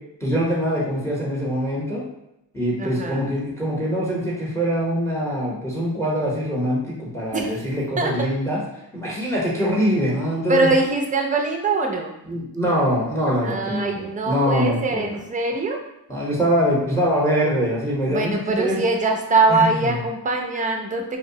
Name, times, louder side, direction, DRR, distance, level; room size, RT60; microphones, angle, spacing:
voice 1, 0.2-2.0 2.5-8.6 8.9-10.7 12.2-15.2 16.1-18.8 19.5-20.0, equal, 5° left, -5 dB, 0.7 m, -23 dB
voice 2, 2.8-3.2 7.3-7.6 8.0-8.1 10.5-12.1 13.4-15.8 18.1-21.2, right 3 dB, 20° right, 2 dB, 0.3 m, -22 dB
2.7 x 2.0 x 2.6 m, 0.86 s
wide cardioid pair, 105°, 42 cm